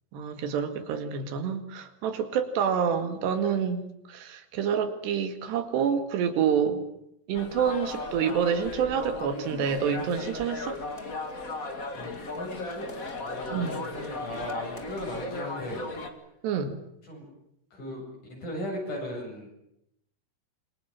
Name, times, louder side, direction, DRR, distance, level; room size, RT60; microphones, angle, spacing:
voice 1, 0.1-6.8 7.3-10.8 13.5-13.8 16.4-16.8, right 7 dB, 80° right, 8 dB, 4.2 m, -28 dB
sound 1, 7.3-16.1, left 2 dB, 30° left, 1.7 m, -36 dB
voice 2, 11.9-12.9 13.2-15.8 17.0-17.3 17.7-18.0 18.3-19.5, left 1 dB, 50° left, 1 dB, 9.2 m, -37 dB
27.0 x 23.5 x 7.6 m, 0.77 s
omnidirectional pair, 4.8 m